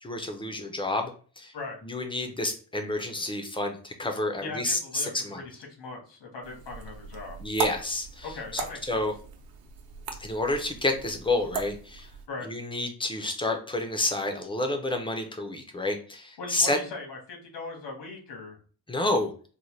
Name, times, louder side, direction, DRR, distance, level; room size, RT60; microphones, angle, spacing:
voice 1, 0.0-1.5 1.8-5.4 7.4-8.6 8.9-9.1 10.2-12.1 12.5-16.8 18.9-19.3, left 2 dB, 15° left, 5 dB, 0.4 m, -29 dB
voice 2, 4.4-7.4 8.2-9.0 12.3-12.5 16.4-18.6, left 3 dB, 85° left, 0 dB, 1.4 m, -39 dB
sound 1, 6.4-12.3, right 5 dB, 60° right, 0.7 m, -38 dB
4.0 x 2.1 x 3.1 m, 0.40 s
wide cardioid pair, 170°, 41 cm